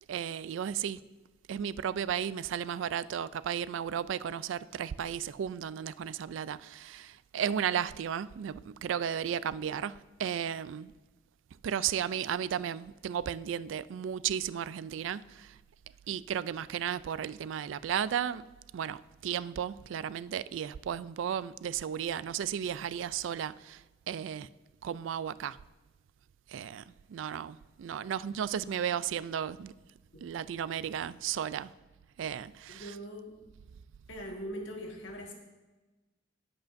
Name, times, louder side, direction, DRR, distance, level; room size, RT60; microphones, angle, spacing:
voice 1, 0.1-1.0 1.5-10.9 11.6-15.6 16.1-18.4 18.7-23.8 24.1-24.5 24.8-25.6 26.5-26.8 27.1-29.7 30.2-31.7 32.2-32.9, right 8 dB, 85° right, 0.3 m, -34 dB
voice 2, 32.7-33.3 34.1-35.3, equal, 85° left, 1.7 m, -41 dB
19.0 x 8.1 x 2.6 m
head